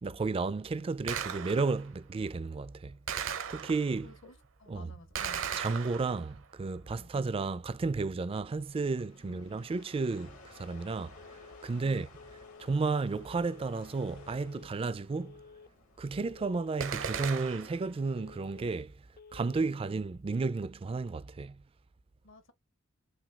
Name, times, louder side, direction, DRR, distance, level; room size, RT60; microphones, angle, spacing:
voice 1, 0.0-3.0 3.5-4.1 4.7-4.9 5.6-12.1 12.6-15.4 16.0-18.9 19.3-21.6, right 4 dB, 25° right, 0.3 m, -33 dB
Gunshot gunfire, 1.1-1.9 3.1-4.1 5.1-6.4 16.8-17.9, right 7 dB, 65° right, 0.6 m, -37 dB
voice 2, 4.0-5.4 6.9-7.1 9.2-9.5 11.7-12.0 19.7-19.8 22.2-22.5, left 1 dB, 65° left, 1.0 m, -54 dB
sound 1, 8.0-17.8, left 3 dB, 80° left, 1.8 m, -57 dB
Telephone, 11.2-11.7 12.2-12.7 13.2-13.7 14.2-14.7 15.2-15.7 16.2-16.7 17.2-17.7 18.2-18.7 19.2-19.7, left 5 dB, 45° left, 0.4 m, -53 dB
5.8 x 2.3 x 2.3 m
head